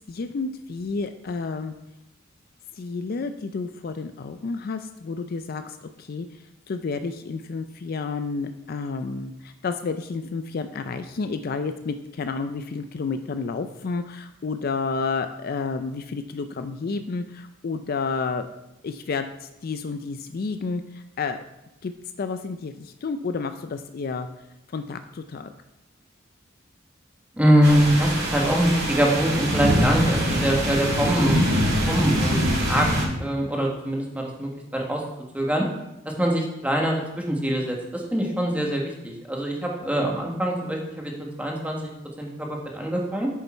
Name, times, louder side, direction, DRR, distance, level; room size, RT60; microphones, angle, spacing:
voice 1, 0.1-1.7 2.8-6.3 6.7-18.5 18.8-21.4 21.8-21.9 22.2-24.3 24.7-25.5, left 4 dB, 50° left, 9 dB, 0.4 m, -30 dB
voice 2, 27.4-31.4 31.8-32.4 32.7-32.9 33.2-35.0 35.3-35.6 36.0-41.1 41.4-41.9 42.2-43.3, equal, 5° right, -1 dB, 1.5 m, -23 dB
sound 1, 27.6-33.0, equal, 60° right, 3.2 m, -24 dB
8.4 x 6.9 x 4.5 m, 0.91 s
head